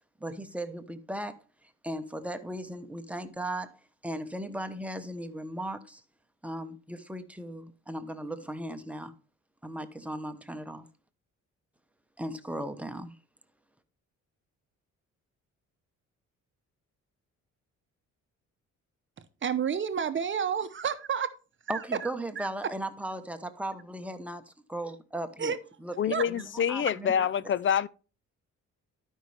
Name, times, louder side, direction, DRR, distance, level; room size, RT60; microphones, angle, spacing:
voice 1, 0.2-3.7 4.0-6.0 6.4-9.1 9.6-10.9 12.2-13.2 21.7-25.5 25.8-27.3, right 1 dB, 5° right, 1.0 m, -37 dB
voice 2, 19.2-21.3 21.6-22.8 25.4-25.6 26.1-26.2, right 7 dB, 40° right, 0.8 m, -31 dB
voice 3, 26.0-27.9, left 8 dB, 40° left, 0.4 m, -26 dB
12.0 x 5.5 x 3.4 m
cardioid pair, 90°, 30 cm